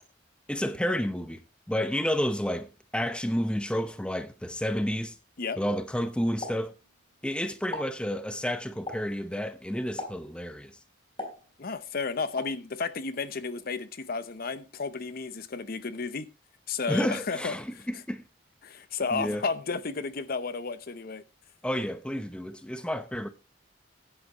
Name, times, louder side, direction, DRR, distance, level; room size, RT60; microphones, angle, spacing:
voice 1, 0.5-1.4 1.7-2.7 2.9-5.1 5.6-6.7 7.2-10.7 16.9-18.2 19.1-19.4 21.6-23.3, equal, 5° left, 0.7 m, -30 dB
Explosion, 6.4-7.3 7.6-8.0 8.9-9.2 10.0-10.4 11.2-11.9 12.4-12.6, left 2 dB, 25° left, 3.8 m, -39 dB
voice 2, 11.6-16.3 16.7-17.9 18.6-21.2, left 4 dB, 50° left, 0.7 m, -33 dB
15.5 x 9.7 x 3.0 m
head